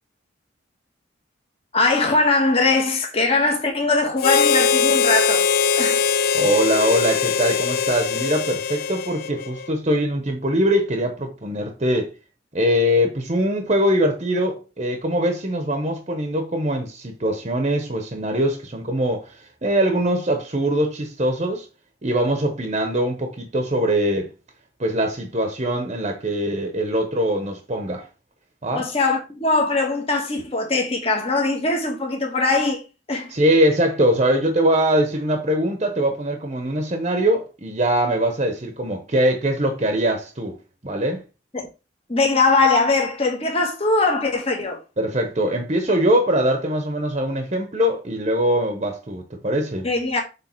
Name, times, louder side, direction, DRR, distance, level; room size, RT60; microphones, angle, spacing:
voice 1, 1.7-5.5 5.7-6.0 28.7-32.8 33.1-33.3 41.5-41.7 42.1-44.8 49.8-50.2, left 3 dB, 30° left, 1.5 m, -21 dB
Harmonica, 4.2-9.7, left 6 dB, 50° left, 0.4 m, -21 dB
voice 2, 6.3-12.1 12.5-21.7 22.0-24.3 24.8-28.0 28.6-28.9 33.3-40.6 40.8-41.2 45.0-49.9, equal, 35° right, 1.0 m, -22 dB
7.3 x 3.2 x 4.5 m
head